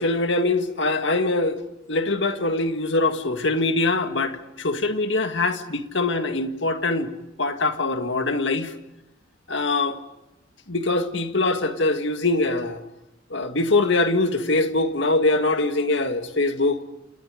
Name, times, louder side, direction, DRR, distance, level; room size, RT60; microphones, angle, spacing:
voice 1, 0.0-1.6 1.9-7.1 7.4-8.7 9.5-10.0 10.7-12.8 13.3-16.8, left 2 dB, 65° left, 2.0 m, -23 dB
29.0 x 28.5 x 5.1 m
head